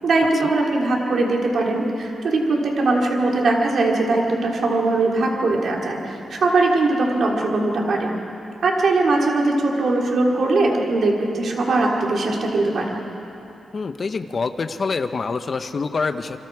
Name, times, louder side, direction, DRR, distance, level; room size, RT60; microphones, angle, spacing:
voice 1, 0.0-8.1 8.6-13.0, right 2 dB, 60° right, -1 dB, 3.5 m, -20 dB
voice 2, 13.7-16.4, left 4 dB, 40° left, 9 dB, 1.0 m, -26 dB
28.0 x 25.0 x 4.9 m, 2.9 s
wide cardioid pair, 120°, 0 cm